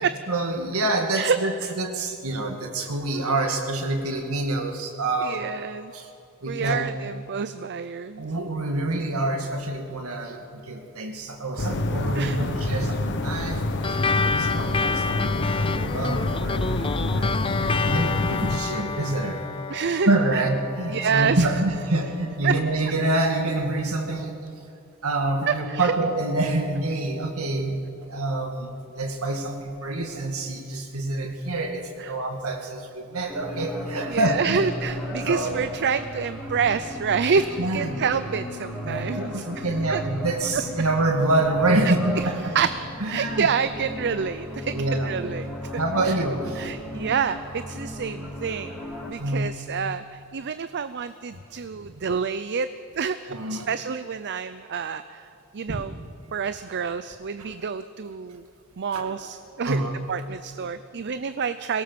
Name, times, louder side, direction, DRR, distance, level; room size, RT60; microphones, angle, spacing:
voice 1, 0.3-5.5 5.9-6.1 6.4-6.9 8.2-17.5 17.8-19.4 20.1-24.3 25.0-34.6 35.2-35.6 37.6-38.0 38.8-42.5 43.0-43.5 44.7-45.1 45.8-46.7 49.1-49.5 53.3-53.7 55.7-55.8 58.9-59.1 59.6-60.1, right 2 dB, 70° right, 4 dB, 2.2 m, -27 dB
voice 2, 1.1-1.7 5.2-5.9 6.5-8.3 12.2-12.4 19.7-20.4 20.9-21.5 22.4-22.6 25.5-25.9 32.0-32.1 34.1-40.0 41.8-41.9 42.5-42.7 43.1-44.8 45.0-45.6 46.1-46.2 46.6-52.7 53.0-55.3 55.5-55.9 56.3-58.4 58.8-59.8 60.1-61.8, right 6 dB, 50° right, 12 dB, 0.5 m, -28 dB
sound 1, 11.6-18.6, left 2 dB, 55° left, 1.2 m, -27 dB
sound 2, 13.8-22.7, left 4 dB, 25° left, 0.5 m, -30 dB
sound 3, 33.3-49.1, left 1 dB, ahead, 4.2 m, -35 dB
22.5 x 17.5 x 7.0 m, 2.5 s
head